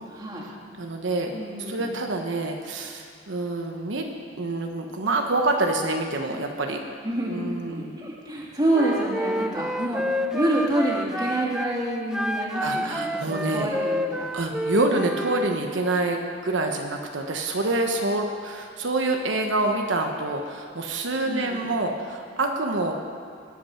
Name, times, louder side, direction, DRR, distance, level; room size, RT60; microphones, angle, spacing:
voice 1, 0.8-1.3 1.7-4.1 4.4-6.8 7.2-7.9 12.6-13.7 14.3-22.9, right 2 dB, 85° right, 3 dB, 1.1 m, -26 dB
voice 2, 1.3-1.8 7.0-14.3 21.2-21.7, right 1 dB, 25° right, -5 dB, 3.1 m, -27 dB
Wind instrument woodwind instrument, 8.7-11.7 12.1-15.5, equal, 5° right, 0.4 m, -29 dB
20.0 x 8.7 x 5.7 m, 2.3 s
head